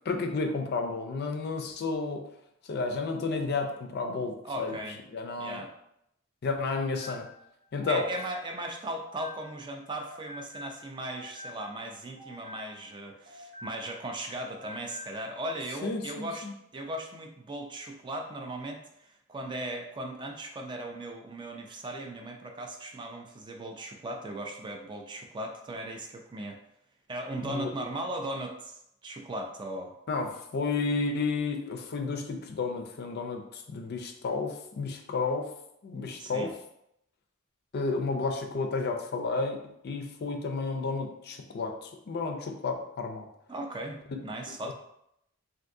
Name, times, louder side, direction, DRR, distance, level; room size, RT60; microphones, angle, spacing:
voice 1, 0.1-2.3 2.7-4.8 5.1-5.6 6.4-7.3 7.7-8.1 15.8-16.5 27.4-27.7 30.1-35.5 35.8-36.5 37.7-43.3 44.7-44.8, left 3 dB, 50° left, 4 dB, 0.4 m, -32 dB
voice 2, 4.4-5.0 5.4-5.7 7.9-16.5 16.7-26.6 27.1-29.9 36.2-36.5 43.5-44.7, right 1 dB, 20° right, 3 dB, 0.3 m, -38 dB
sound 1, 6.7-9.7 10.0-14.1 14.3-15.2, left 3 dB, 50° right, 0.9 m, -48 dB
3.5 x 2.5 x 2.6 m, 0.77 s
head